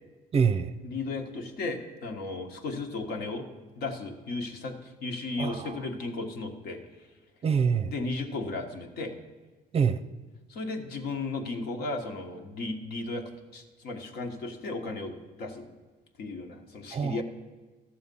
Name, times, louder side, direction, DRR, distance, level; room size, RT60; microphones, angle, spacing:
voice 1, 0.3-0.7 5.4-5.8 7.4-7.9 9.7-10.0 16.9-17.2, right 6 dB, 35° right, 13 dB, 0.5 m, -25 dB
voice 2, 0.8-3.5 3.7-6.8 7.8-9.2 10.5-15.7 16.2-17.2, left 3 dB, 70° left, 3 dB, 1.5 m, -35 dB
13.5 x 7.0 x 5.4 m, 1.3 s
cardioid pair, 110°, 17 cm